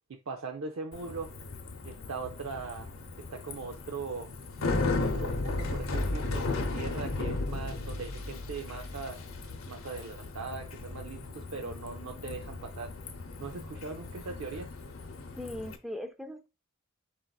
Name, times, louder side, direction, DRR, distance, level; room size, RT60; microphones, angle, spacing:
voice 1, 0.1-1.3 1.8-2.9 3.3-4.3 5.0-9.2 9.7-12.9 13.4-14.7, right 4 dB, 65° right, 0.5 m, -40 dB
Bicycle, 0.9-15.8, left 2 dB, 70° left, 0.7 m, -35 dB
voice 2, 15.4-16.5, left 1 dB, ahead, 0.4 m, -39 dB
4.4 x 3.9 x 2.3 m
head